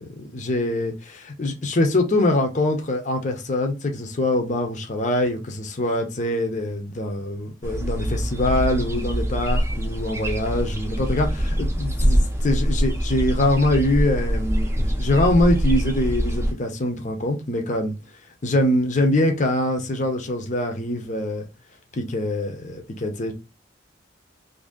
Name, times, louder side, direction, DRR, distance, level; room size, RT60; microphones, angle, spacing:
voice 1, 0.2-17.9 18.4-21.5 21.9-23.3, left 1 dB, 40° left, 0.7 m, -23 dB
sound 1, 7.6-16.5, equal, 15° right, 0.6 m, -24 dB
2.7 x 2.6 x 3.7 m
head